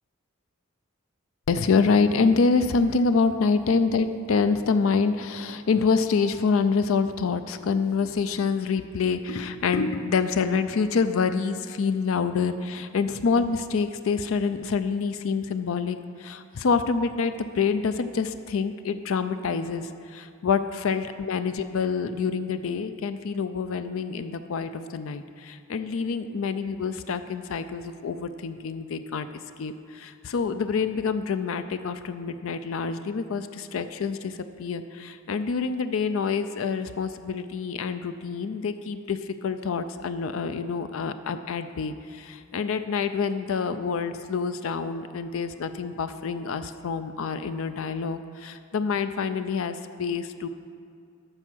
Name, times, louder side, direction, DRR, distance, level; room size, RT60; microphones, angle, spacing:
voice 1, 1.5-29.3 29.6-50.5, left 5 dB, 70° left, 10 dB, 0.4 m, -26 dB
13.0 x 4.5 x 6.1 m, 2.4 s
head